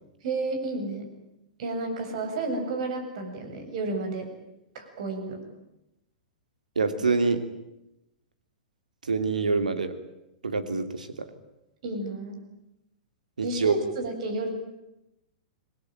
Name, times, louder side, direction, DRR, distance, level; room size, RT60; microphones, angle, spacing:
voice 1, 0.2-1.1 1.6-4.3 4.7-5.4 11.8-12.4 13.4-14.5, right 2 dB, 50° right, 5 dB, 7.6 m, -31 dB
voice 2, 6.7-7.4 9.0-9.9 10.4-11.3 13.4-13.8, right 4 dB, 75° right, 9 dB, 3.1 m, -26 dB
27.0 x 21.0 x 9.1 m, 0.89 s
figure-of-eight pair, 105°, 4 cm